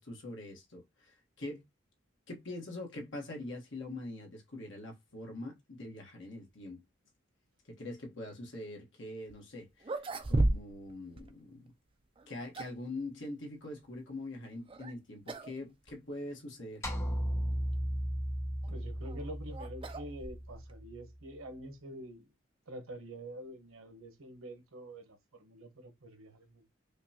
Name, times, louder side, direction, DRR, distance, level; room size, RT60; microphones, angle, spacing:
voice 1, 0.0-1.6 2.3-6.8 7.7-11.7 12.3-16.9, left 2 dB, 65° left, 1.2 m, -43 dB
sound 1, 9.3-9.4 9.8-10.9 11.2-11.3 12.1-12.9 14.7-14.9 15.3-15.6 15.9-16.0 16.7-16.8 18.6-20.7, right 2 dB, 25° right, 0.4 m, -34 dB
sound 2, 16.8-21.2, equal, 15° left, 0.7 m, -36 dB
voice 2, 18.7-22.3 22.7-26.7, right 1 dB, 90° right, 1.0 m, -47 dB
5.1 x 2.3 x 2.8 m
head